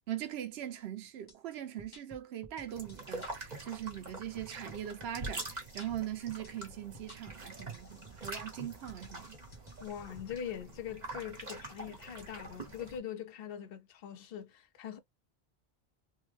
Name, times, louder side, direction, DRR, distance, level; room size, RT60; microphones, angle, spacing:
voice 1, 0.1-9.4, right 11 dB, 85° right, 0.9 m, -41 dB
sound 1, 1.3-1.4 1.8-3.3 3.9-5.9 6.4-6.5 6.9-10.2, left 1 dB, 25° left, 0.9 m, -55 dB
sound 2, 2.7-13.0, right 2 dB, 45° right, 1.3 m, -45 dB
voice 2, 9.8-15.0, left 9 dB, 65° left, 0.8 m, -42 dB
3.4 x 2.2 x 3.2 m
omnidirectional pair, 1.1 m